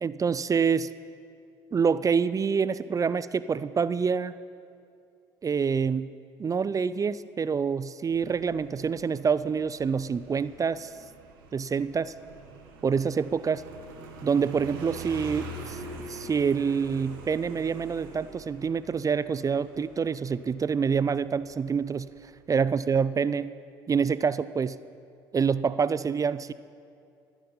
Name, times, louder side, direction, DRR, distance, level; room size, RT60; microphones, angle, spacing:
voice 1, 0.0-0.9 1.7-4.3 5.4-6.1 6.4-10.9 11.5-12.1 12.8-13.6 14.2-15.8 16.1-22.1 22.5-23.5 23.9-24.8 25.3-26.5, right 6 dB, 30° right, 16 dB, 0.4 m, -26 dB
Motorcycle, 8.1-22.4, right 2 dB, 85° right, 1.1 m, -45 dB
13.5 x 9.7 x 5.5 m, 2.4 s
hypercardioid pair, 55°, 12 cm